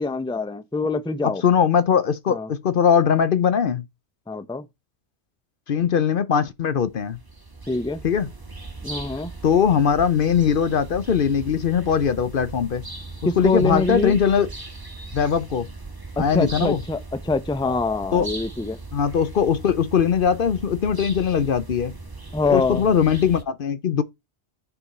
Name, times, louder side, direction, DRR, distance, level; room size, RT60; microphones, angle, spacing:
voice 1, 0.0-1.4 2.3-2.5 4.3-4.6 7.7-8.0 8.8-9.3 13.2-14.2 16.2-17.0 17.2-18.8 22.3-22.8, left 3 dB, 5° left, 0.6 m, -24 dB
voice 2, 1.2-3.8 5.7-7.2 8.0-8.3 9.4-12.8 13.4-14.5 15.1-15.7 16.2-16.8 18.1-18.3 18.9-21.9 22.5-24.0, left 7 dB, 55° left, 0.8 m, -20 dB
sound 1, 6.8-23.4, right 3 dB, 20° right, 1.4 m, -38 dB
7.0 x 4.7 x 5.2 m
omnidirectional pair, 1.1 m